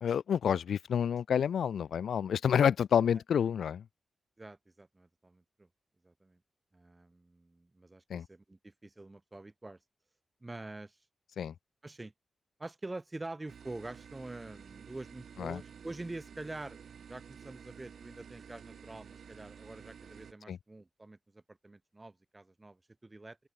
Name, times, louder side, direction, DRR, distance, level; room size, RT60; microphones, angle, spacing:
voice 1, 0.0-3.8 8.1-8.3 11.4-11.5 15.4-15.6 20.5-20.6, left 8 dB, 85° left, 0.3 m, -29 dB
voice 2, 4.4-5.7 6.0-6.4 6.7-9.8 10.4-11.0 11.8-12.1 12.6-16.8 17.1-23.4, right 2 dB, 15° right, 3.6 m, -46 dB
sound 1, 13.5-20.3, right 7 dB, 65° right, 5.6 m, -52 dB
open air
wide cardioid pair, 155°, 0 cm